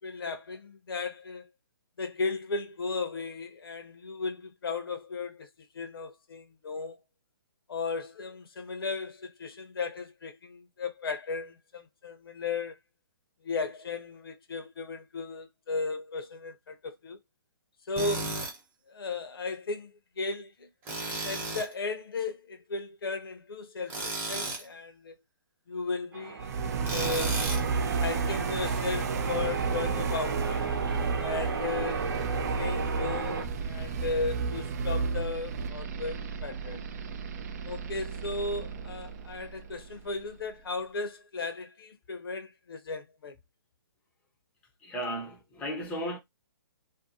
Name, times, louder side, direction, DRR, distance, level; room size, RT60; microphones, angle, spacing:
voice 1, 0.0-1.5 2.0-7.0 7.7-12.8 13.4-17.2 17.9-18.4 18.9-19.9 20.2-20.7 21.2-25.1 25.7-26.5 26.9-27.5 28.0-30.6 31.2-32.2 32.6-36.8 37.7-43.4, left 4 dB, 75° left, 0.7 m, -35 dB
Tools, 18.0-18.5 20.9-21.7 23.9-24.6 26.8-27.7, right 2 dB, 15° right, 0.8 m, -34 dB
Church bell, 26.1-33.4, right 5 dB, 70° right, 0.8 m, -34 dB
sound 1, 26.4-40.3, right 5 dB, 45° right, 0.4 m, -33 dB
voice 2, 44.8-46.2, equal, 10° left, 0.6 m, -35 dB
2.6 x 2.1 x 2.6 m
hypercardioid pair, 150°, 12 cm